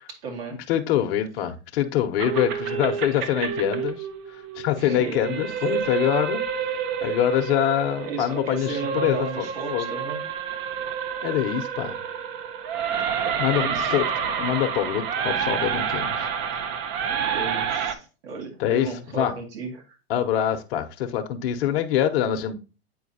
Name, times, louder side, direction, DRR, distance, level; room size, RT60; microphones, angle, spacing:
voice 1, 0.1-0.6 4.8-5.4 8.0-10.2 10.5-10.8 13.2-13.9 16.5-16.6 17.3-20.0, right 4 dB, 60° right, 2.3 m, -35 dB
voice 2, 0.7-4.1 4.5-6.4 7.0-9.9 11.2-12.0 13.4-16.3 18.6-18.9 19.1-19.3 20.1-22.5, left 11 dB, 60° left, 0.9 m, -25 dB
sound 1, 2.2-17.9, right 7 dB, 40° right, 0.7 m, -29 dB
8.6 x 4.4 x 2.7 m
hypercardioid pair, 110°, 33 cm